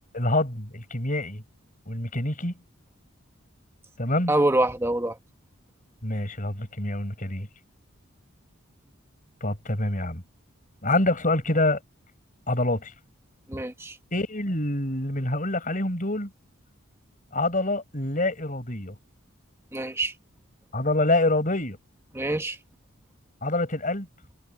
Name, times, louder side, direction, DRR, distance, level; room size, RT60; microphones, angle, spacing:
voice 1, 0.1-1.4 1.9-2.5 4.0-4.3 6.0-7.5 9.4-10.2 10.8-11.8 12.5-12.9 14.1-16.3 17.3-18.9 20.7-21.8 23.4-24.1, left 2 dB, 40° left, 6.0 m, -26 dB
voice 2, 4.3-5.2 13.5-14.0 19.7-20.1 22.1-22.6, right 1 dB, 10° right, 1.8 m, -25 dB
head